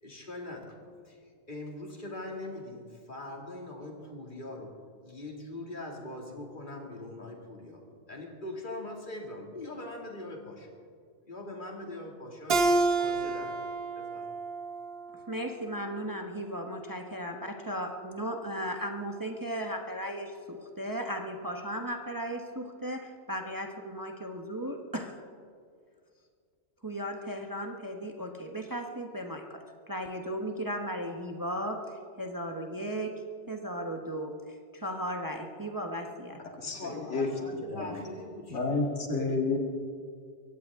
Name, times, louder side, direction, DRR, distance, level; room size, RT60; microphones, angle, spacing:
voice 1, 0.0-0.8 1.0-1.2 1.5-4.7 5.0-10.7 11.3-12.6 13.0-13.7 13.9-14.3 36.6-38.7, left 1 dB, 45° left, 0 dB, 2.6 m, -42 dB
Keyboard (musical), 12.5-15.7, right 3 dB, 60° right, 1.1 m, -29 dB
voice 2, 15.3-25.2 26.8-36.4, equal, 20° right, 3 dB, 1.0 m, -36 dB
voice 3, 36.6-38.0 38.5-39.6, left 3 dB, 75° left, 1 dB, 2.4 m, -31 dB
23.5 x 16.5 x 3.6 m, 2.1 s
omnidirectional pair, 1.2 m